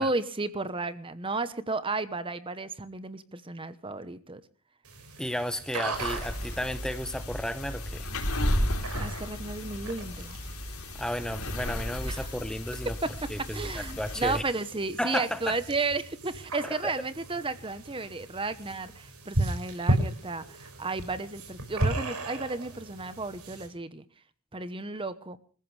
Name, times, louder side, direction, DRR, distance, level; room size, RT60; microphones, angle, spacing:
voice 1, 0.0-4.4 9.0-10.4 12.1-12.3 13.0-24.0 24.5-25.4, right 3 dB, 25° right, 13 dB, 1.0 m, -33 dB
sound 1, 4.8-23.7, right 1 dB, 85° right, 6.2 m, -36 dB
voice 2, 5.2-8.1 11.0-12.9 13.3-14.4 15.0-15.5 16.6-16.9, equal, 5° left, 11 dB, 1.0 m, -33 dB
sound 2, 5.9-14.4, left 1 dB, 75° left, 3.8 m, -33 dB
26.5 x 15.0 x 3.4 m, 0.41 s
head